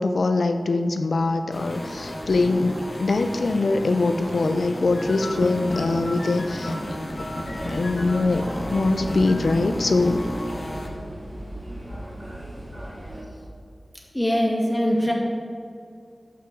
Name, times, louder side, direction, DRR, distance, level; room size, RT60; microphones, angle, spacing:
voice 1, 0.0-6.8 7.2-7.3 7.7-10.2, left 3 dB, 85° left, 7 dB, 0.4 m, -23 dB
sound 1, 1.5-10.9, left 1 dB, 35° left, 1.3 m, -34 dB
sound 2, 4.8-10.4, left 1 dB, 65° left, 1.2 m, -34 dB
sound 3, 7.3-13.2, right 1 dB, 25° right, 2.3 m, -37 dB
voice 2, 14.1-15.1, equal, 10° left, -3 dB, 2.1 m, -22 dB
14.0 x 5.8 x 3.7 m, 2.4 s
wide cardioid pair, 70°, 0 cm